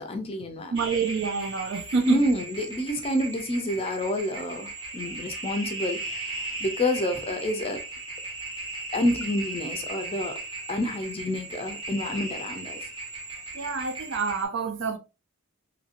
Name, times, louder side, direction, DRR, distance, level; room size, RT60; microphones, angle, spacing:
voice 1, 0.0-0.7 2.0-7.8 8.9-10.4 10.7-12.8, left 1 dB, 25° left, 0.5 m, -28 dB
sound 1, 0.7-14.4, right 2 dB, 20° right, 0.9 m, -37 dB
voice 2, 0.7-2.3 3.8-3.9 13.5-15.0, right 4 dB, 55° right, 0.4 m, -27 dB
2.8 x 2.8 x 2.4 m
head